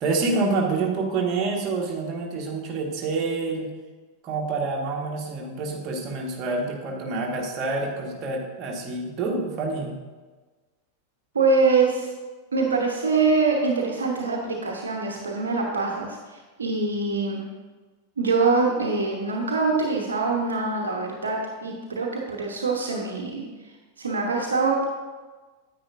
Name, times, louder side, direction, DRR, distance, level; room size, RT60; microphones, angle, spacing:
voice 1, 0.0-3.7 4.2-10.0, right 3 dB, 35° right, -1 dB, 1.6 m, -27 dB
voice 2, 11.3-12.1 12.5-17.4 18.2-23.5 24.0-24.8, right 4 dB, 70° right, 0 dB, 1.0 m, -24 dB
9.5 x 9.0 x 2.6 m, 1.3 s
figure-of-eight pair, 90°, 0 cm